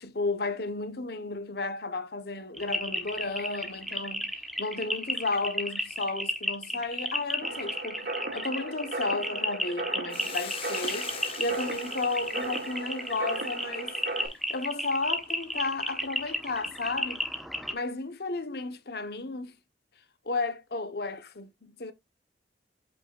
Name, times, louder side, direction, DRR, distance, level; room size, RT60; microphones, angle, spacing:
voice 1, 0.0-11.1 11.4-13.9 14.5-17.2 17.7-19.5 20.2-21.9, left 3 dB, 60° left, 1.0 m, -33 dB
sound 1, 2.6-17.7, equal, ahead, 1.0 m, -33 dB
sound 2, 7.4-14.3, right 2 dB, 65° right, 2.1 m, -37 dB
Hiss, 10.1-14.6, left 6 dB, 30° left, 1.4 m, -43 dB
8.2 x 5.5 x 2.4 m
head